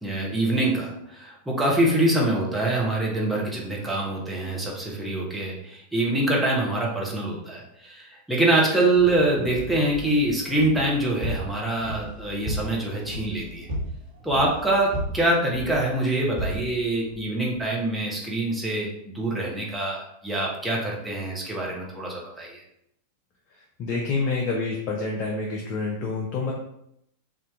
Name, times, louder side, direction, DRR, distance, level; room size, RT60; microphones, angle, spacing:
voice 1, 0.0-13.7 14.2-22.6, right 1 dB, 5° right, -4 dB, 1.0 m, -25 dB
sound 1, 8.9-17.6, equal, 60° right, 1.5 m, -35 dB
voice 2, 23.8-26.5, left 3 dB, 40° left, -1 dB, 0.6 m, -27 dB
3.6 x 2.8 x 3.5 m, 0.76 s
figure-of-eight pair, 90°, 0 cm